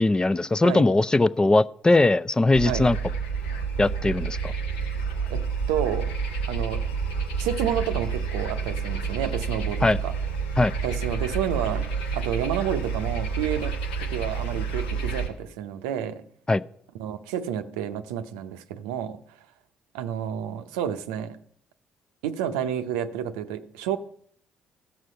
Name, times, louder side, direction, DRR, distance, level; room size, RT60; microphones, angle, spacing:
voice 1, 0.0-3.0 3.8-4.5 9.8-10.0 10.6-10.7 16.5-16.6, left 2 dB, 20° left, 0.5 m, -20 dB
sound 1, 2.5-15.3, right 5 dB, 90° left, 1.2 m, -29 dB
voice 2, 5.3-6.1 6.5-6.9 7.4-10.1 10.8-16.2 17.0-19.2 19.9-21.4 22.2-24.0, right 9 dB, 85° right, 0.6 m, -30 dB
15.0 x 6.4 x 5.5 m
hypercardioid pair, 50°, 4 cm